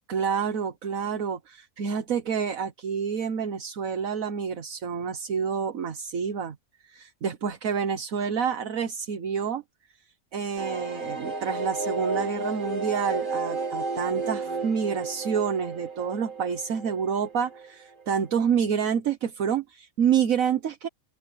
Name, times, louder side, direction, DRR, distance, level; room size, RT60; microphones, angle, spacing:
voice 1, 0.1-6.6 6.8-9.6 10.3-20.9, right 7 dB, 75° right, 1.6 m, -28 dB
sound 1, 10.6-18.0 18.3-18.4 18.7-18.8, right 3 dB, 35° right, 2.1 m, -33 dB
open air
omnidirectional pair, 1.5 m